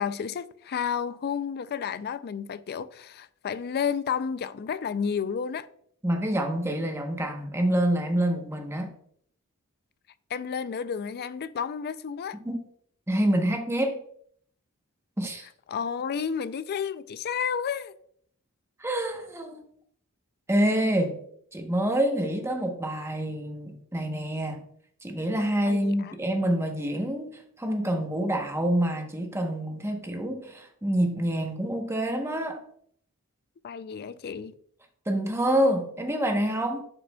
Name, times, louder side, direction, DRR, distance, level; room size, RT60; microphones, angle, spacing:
voice 1, 0.0-5.7 10.3-12.4 15.7-17.9 25.7-26.1 33.6-34.5, left 7 dB, 45° left, 0.4 m, -31 dB
voice 2, 6.0-8.9 12.4-12.6 13.1-14.0 15.2-15.5 18.8-19.6 20.5-21.2 21.5-24.6 25.0-32.6 35.1-36.8, right 1 dB, 10° right, 0.9 m, -27 dB
11.0 x 5.0 x 2.3 m
head